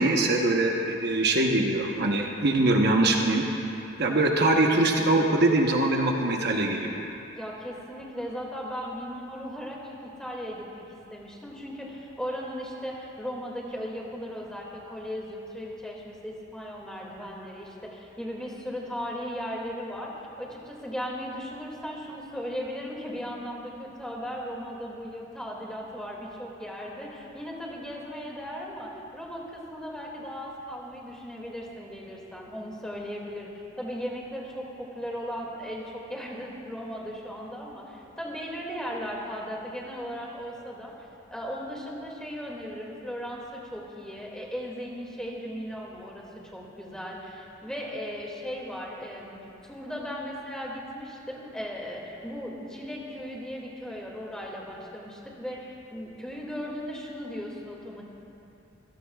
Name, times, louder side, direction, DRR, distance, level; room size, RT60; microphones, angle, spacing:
voice 1, 0.0-3.4 4.0-7.0, right 2 dB, 55° right, 1 dB, 1.1 m, -23 dB
voice 2, 7.3-10.8 11.1-20.1 20.4-33.5 33.8-40.9 41.3-46.3 46.5-49.4 49.6-58.0, equal, 5° left, -3 dB, 2.3 m, -37 dB
26.5 x 16.5 x 2.4 m, 2.8 s
head